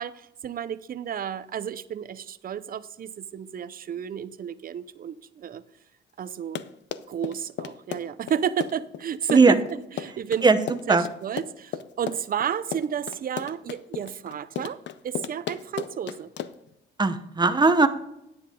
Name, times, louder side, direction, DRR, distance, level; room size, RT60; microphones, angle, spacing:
voice 1, 0.0-5.6 6.2-6.6 7.1-10.5 10.9-16.3, right 8 dB, 45° right, 0.6 m, -32 dB
Run, 6.3-16.7, left 9 dB, 65° left, 0.6 m, -35 dB
voice 2, 17.0-17.9, right 4 dB, 20° right, 0.9 m, -18 dB
9.9 x 8.8 x 3.7 m
cardioid pair, 90°, 20 cm